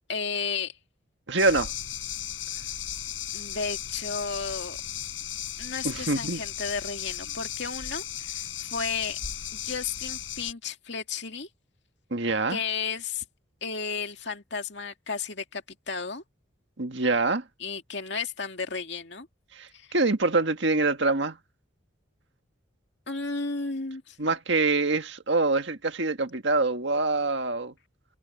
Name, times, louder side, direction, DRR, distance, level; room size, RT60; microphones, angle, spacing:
voice 1, 0.1-0.8 3.3-4.8 5.6-9.2 9.5-11.5 12.5-13.2 13.6-16.2 17.6-19.3 19.7-19.9 23.1-24.2, left 5 dB, 60° left, 2.4 m, -33 dB
voice 2, 1.3-1.7 5.8-6.4 12.1-12.6 16.8-17.4 19.6-21.4 24.2-27.7, right 3 dB, 65° right, 1.8 m, -25 dB
sound 1, 1.4-10.5, left 11 dB, 80° left, 6.4 m, -36 dB
head